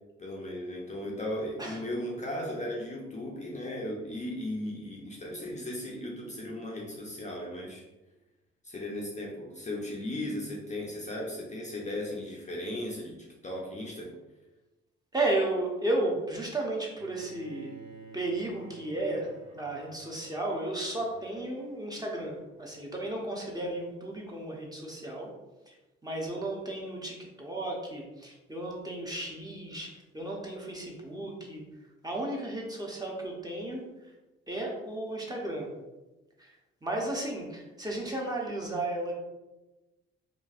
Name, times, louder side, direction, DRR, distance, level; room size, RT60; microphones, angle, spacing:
voice 1, 0.2-7.8 8.6-14.1, left 1 dB, 25° left, -3 dB, 0.6 m, -36 dB
voice 2, 15.1-17.7 18.1-19.3 19.6-25.3 25.7-25.8 26.0-31.6 32.0-33.8 34.5-35.7 36.4-36.5 36.8-39.1, right 2 dB, 15° right, -2 dB, 0.8 m, -34 dB
Bowed string instrument, 17.0-23.0, right 4 dB, 70° right, 0.7 m, -52 dB
3.0 x 2.3 x 2.5 m, 1.1 s
hypercardioid pair, 50°, 29 cm